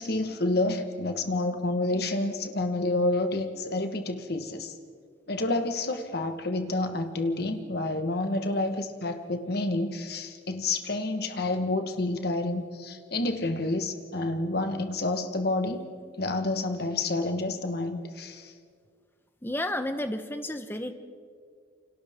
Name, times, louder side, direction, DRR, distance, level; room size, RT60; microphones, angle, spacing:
voice 1, 0.0-4.7 5.3-15.8 16.2-18.5, left 2 dB, 55° left, 7 dB, 1.4 m, -29 dB
voice 2, 19.4-20.9, left 1 dB, 10° left, 8 dB, 1.0 m, -31 dB
28.5 x 25.5 x 3.7 m, 2.1 s
head